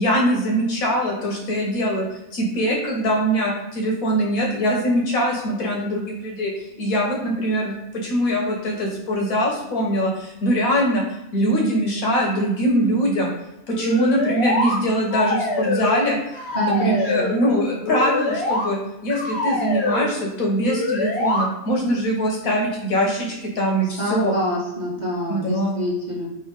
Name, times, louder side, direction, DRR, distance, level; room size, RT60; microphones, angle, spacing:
voice 1, 0.0-2.0 2.3-6.5 6.8-7.8 8.0-11.0 11.3-13.3 13.7-16.2 16.6-24.3 25.3-25.8, equal, 75° left, -1 dB, 1.5 m, -22 dB
sound 1, 13.7-14.8 15.1-16.0 16.3-17.4 17.8-18.6 19.1-20.1 20.7-21.4, left 2 dB, 50° left, 1.2 m, -24 dB
voice 2, 16.5-17.3 24.0-26.3, right 1 dB, 35° right, -4 dB, 1.0 m, -26 dB
3.6 x 3.1 x 4.7 m, 0.89 s
omnidirectional pair, 1.5 m